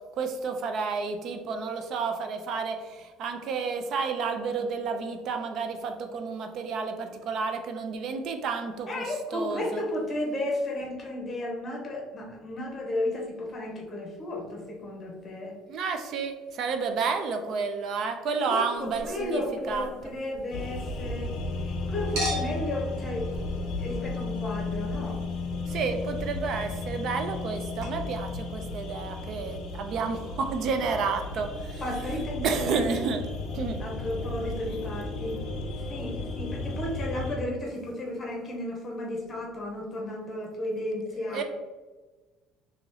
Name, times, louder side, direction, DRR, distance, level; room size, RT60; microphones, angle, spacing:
voice 1, 0.1-9.0 9.3-9.8 15.7-19.4 19.7-19.9 25.7-31.8 32.4-33.2 33.5-33.8 41.3-41.4, right 5 dB, 45° right, 6 dB, 0.4 m, -31 dB
voice 2, 8.9-15.6 18.4-21.3 21.6-23.3 23.8-25.2 31.8-33.1 33.8-35.4 35.8-41.4, left 1 dB, 25° left, -1 dB, 0.9 m, -33 dB
Chink clink, 18.8-21.7 22.2-27.5 27.8-27.9, equal, 70° right, 1.3 m, -40 dB
sound 1, 20.5-37.4, left 2 dB, 50° left, 0.5 m, -34 dB
2.8 x 2.8 x 3.8 m, 1.3 s
cardioid pair, 160°, 0 cm